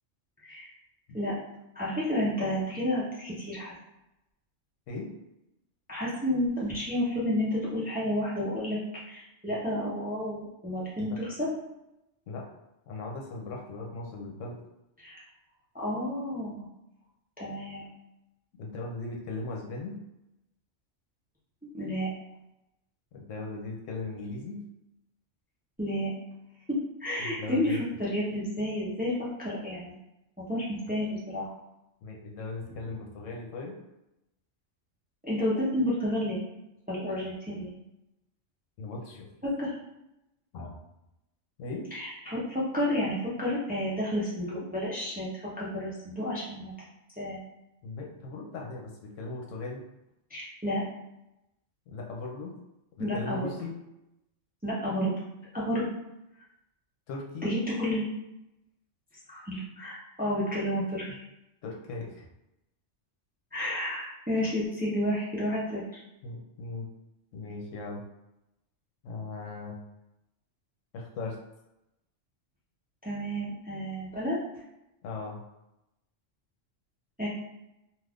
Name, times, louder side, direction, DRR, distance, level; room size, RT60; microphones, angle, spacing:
voice 1, 1.7-3.7 5.9-8.8 9.1-11.5 15.0-15.2 15.7-16.6 17.4-17.9 21.7-22.1 25.8-26.1 26.7-29.9 30.4-31.5 35.2-36.4 36.9-37.7 39.4-39.7 41.9-46.7 47.2-47.4 50.3-50.8 53.0-53.5 54.6-55.1 55.5-55.9 57.4-58.1 59.3-61.1 63.5-66.0 73.0-74.4 77.2-77.3, left 1 dB, 10° right, -7 dB, 0.6 m, -31 dB
voice 2, 12.9-14.6 18.6-19.9 23.1-24.6 27.2-27.8 32.0-33.8 38.8-39.4 40.5-40.9 41.6-41.9 47.8-49.8 51.9-52.5 53.0-53.7 57.1-57.5 61.6-62.3 66.2-66.9 67.3-68.0 69.0-69.8 70.9-71.4 75.0-75.4, left 3 dB, 80° left, 0 dB, 1.0 m, -38 dB
2.5 x 2.5 x 3.4 m, 0.88 s
omnidirectional pair, 1.3 m